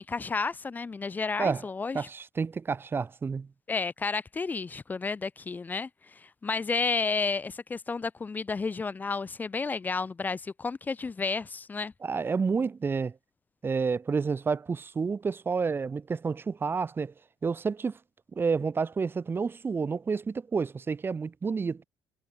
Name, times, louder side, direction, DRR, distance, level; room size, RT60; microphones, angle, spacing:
voice 1, 0.0-2.1 3.7-11.9, left 4 dB, 20° left, 0.5 m, -31 dB
voice 2, 1.9-3.5 12.0-13.1 13.6-17.1 17.4-18.0 18.3-21.8, right 5 dB, 20° right, 1.4 m, -29 dB
cardioid pair, 175°, 10 cm